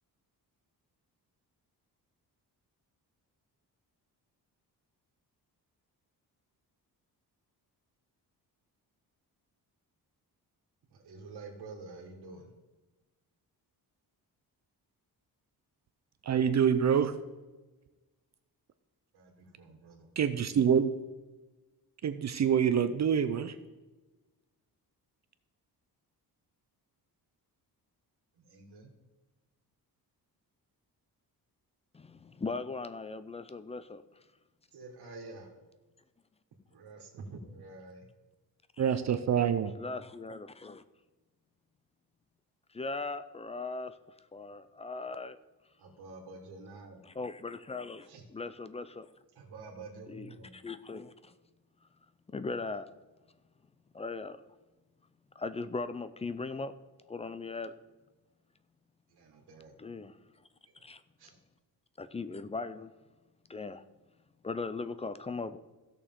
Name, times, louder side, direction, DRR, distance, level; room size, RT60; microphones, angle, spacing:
voice 1, 10.9-12.5 19.1-20.1 28.5-28.9 34.7-35.5 36.7-38.1 45.8-47.0 48.1-48.3 49.4-50.6 59.1-59.8 60.7-60.8 61.2-61.4, right 3 dB, 80° right, 1.8 m, -48 dB
voice 2, 16.3-17.1 20.2-20.9 22.0-23.5 38.8-39.7, right 8 dB, 45° right, 0.5 m, -26 dB
voice 3, 31.9-34.0 38.8-38.9 39.8-40.8 42.7-44.0 44.3-45.4 47.0-49.1 50.1-51.4 52.3-52.9 53.9-54.4 55.4-56.7 57.1-57.7 59.8-60.2 60.8-61.0 62.0-62.9 63.5-63.8 64.4-65.6, left 3 dB, 15° left, 0.4 m, -39 dB
16.0 x 6.6 x 3.7 m
cardioid pair, 135°, 39 cm